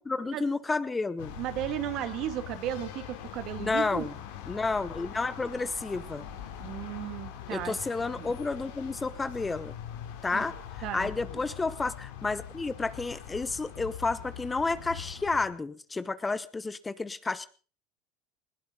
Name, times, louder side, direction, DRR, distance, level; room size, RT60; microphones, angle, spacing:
voice 1, 0.1-1.3 3.6-4.1 4.5-6.3 7.5-9.7 10.2-10.6 10.9-17.5, left 3 dB, 20° left, 15 dB, 1.0 m, -31 dB
sound 1, 1.2-15.5, left 9 dB, 80° left, 3.0 m, -42 dB
voice 2, 1.4-4.0 6.6-7.8 8.2-8.3 10.3-10.4 10.8-11.4, right 12 dB, 60° right, 9 dB, 2.2 m, -35 dB
20.0 x 18.0 x 3.9 m, 0.38 s
hypercardioid pair, 90°, 0 cm